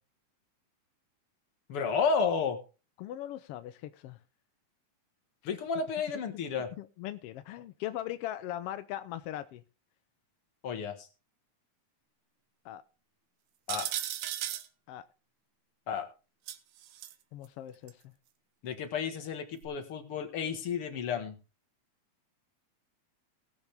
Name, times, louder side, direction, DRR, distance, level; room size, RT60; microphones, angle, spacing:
voice 1, 1.7-2.6 5.4-6.7 10.6-11.1 13.7-13.9 15.9-16.1 18.6-21.4, left 6 dB, 55° left, 7 dB, 2.2 m, -32 dB
voice 2, 3.0-4.2 6.8-9.6 12.6-12.8 14.9-15.1 17.3-18.1, left 13 dB, 75° left, 11 dB, 1.3 m, -40 dB
sound 1, 13.7-14.7 16.5-17.1 17.9-18.0 19.6-19.7, right 12 dB, 75° right, 2.2 m, -35 dB
19.5 x 7.3 x 3.4 m, 0.32 s
omnidirectional pair, 3.4 m